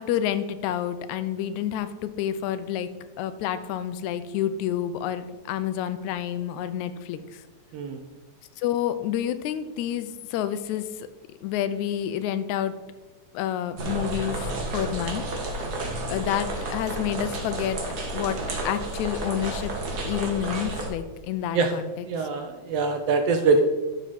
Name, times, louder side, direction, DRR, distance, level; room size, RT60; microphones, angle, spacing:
voice 1, 0.0-2.9 3.2-7.4 8.6-11.1 11.4-12.7 13.3-15.2 15.5-15.6 16.1-17.8 18.1-18.4 18.7-19.7 20.0-22.3, left 10 dB, 85° left, 12 dB, 2.0 m, -29 dB
sound 1, 13.8-20.9, right 1 dB, 45° right, 1.4 m, -31 dB
voice 2, 22.0-23.6, right 4 dB, 75° right, 6 dB, 1.5 m, -23 dB
11.0 x 6.8 x 4.1 m, 1.2 s
omnidirectional pair, 3.3 m